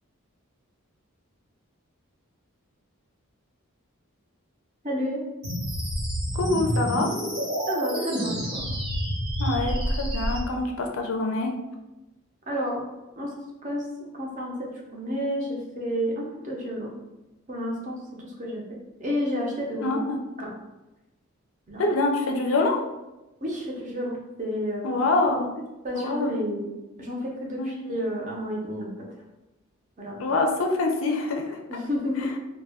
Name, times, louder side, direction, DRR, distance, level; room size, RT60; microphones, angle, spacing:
voice 1, 4.8-5.2 7.7-8.6 12.5-12.8 13.2-13.3 13.6-13.8 14.1-16.9 17.5-18.6 19.0-20.0 20.4-20.5 21.7-21.8 23.4-25.0 25.3-25.4 25.8-26.7 27.0-28.9 30.0-30.2 31.7-32.3, equal, 35° right, -2 dB, 0.6 m, -30 dB
sound 1, 5.4-10.4, equal, 75° right, 1.0 m, -28 dB
voice 2, 6.3-7.1 9.4-11.5 19.8-20.2 21.8-22.8 24.8-25.5 25.9-26.3 27.6-27.8 30.2-31.6, left 2 dB, 70° left, 2 dB, 0.4 m, -25 dB
2.3 x 2.1 x 3.4 m, 1.0 s
head